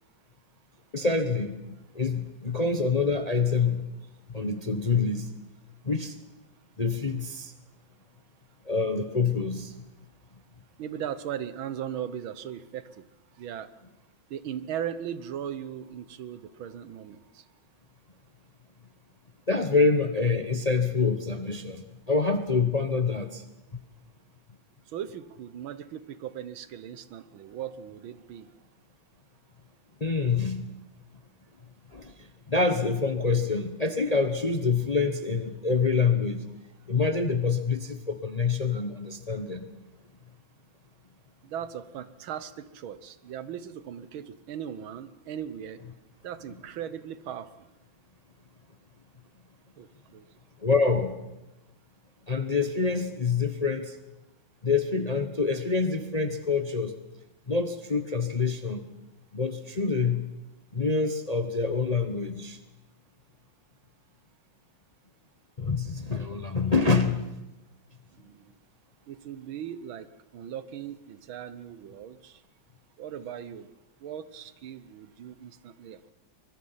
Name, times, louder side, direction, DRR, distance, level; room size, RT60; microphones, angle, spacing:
voice 1, 0.9-1.6 1.9-3.8 4.3-5.3 5.8-6.2 6.8-7.5 8.6-9.7 19.5-23.4 23.7-23.8 30.0-30.7 31.9-36.4 36.9-39.7 50.6-51.2 52.3-54.0 54.6-57.0 57.5-58.9 59.3-60.3 60.7-62.6 65.6-67.3, left 4 dB, 30° left, 8 dB, 0.7 m, -26 dB
voice 2, 10.8-13.1 13.4-13.7 14.3-17.4 24.9-28.5 41.4-45.8 46.2-47.5 49.8-50.3 68.2-68.6 69.1-70.1 70.3-72.4 73.0-73.7 74.0-76.1, right 9 dB, 85° right, 14 dB, 1.8 m, -38 dB
24.5 x 21.5 x 5.7 m, 1.0 s
omnidirectional pair, 2.2 m